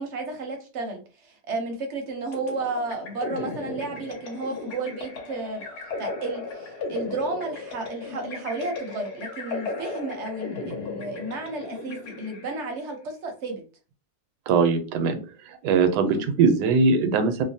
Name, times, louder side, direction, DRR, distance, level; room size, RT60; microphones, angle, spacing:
voice 1, 0.0-5.6 6.0-13.6 16.1-16.2, right 3 dB, 60° right, 3 dB, 0.7 m, -32 dB
sound 1, 2.3-12.8, left 3 dB, 80° left, 1.4 m, -36 dB
voice 2, 14.5-15.2 15.6-17.4, right 4 dB, 85° right, 8 dB, 1.2 m, -21 dB
3.0 x 2.0 x 2.6 m, 0.35 s
omnidirectional pair, 1.7 m